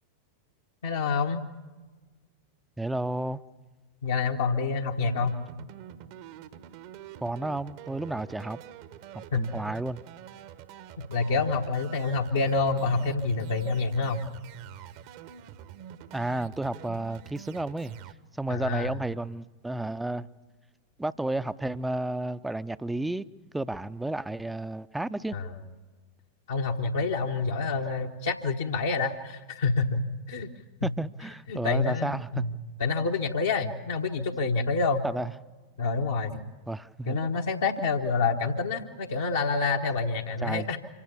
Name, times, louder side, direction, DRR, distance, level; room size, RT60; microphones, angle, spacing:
voice 1, 0.8-1.4 4.0-5.3 9.3-9.4 11.1-14.2 18.5-18.9 25.3-25.5 26.5-30.5 31.5-32.5 32.8-35.0 35.8-36.4 37.1-40.8, left 4 dB, 65° left, 0 dB, 1.2 m, -27 dB
voice 2, 2.8-3.4 7.2-8.6 9.1-10.0 16.1-18.0 18.4-20.3 21.0-23.3 23.5-25.4 30.8-32.4 35.0-35.3 36.7-37.2 40.4-40.7, right 2 dB, 5° right, 15 dB, 0.6 m, -32 dB
sound 1, 5.1-18.1, right 10 dB, 45° right, 1.0 m, -46 dB
26.0 x 16.0 x 8.4 m, 1.3 s
figure-of-eight pair, 90°, 0 cm